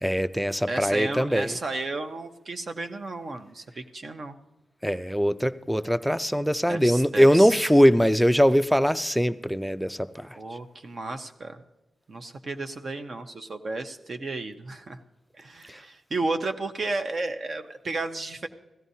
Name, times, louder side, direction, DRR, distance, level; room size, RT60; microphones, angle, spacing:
voice 1, 0.0-1.5 4.8-10.3, equal, ahead, 0.4 m, -21 dB
voice 2, 0.7-4.4 6.7-7.6 10.4-11.6 12.1-15.0 15.3-18.5, right 2 dB, 40° right, 0.7 m, -33 dB
16.5 x 14.0 x 2.7 m
wide cardioid pair, 130°, 0 cm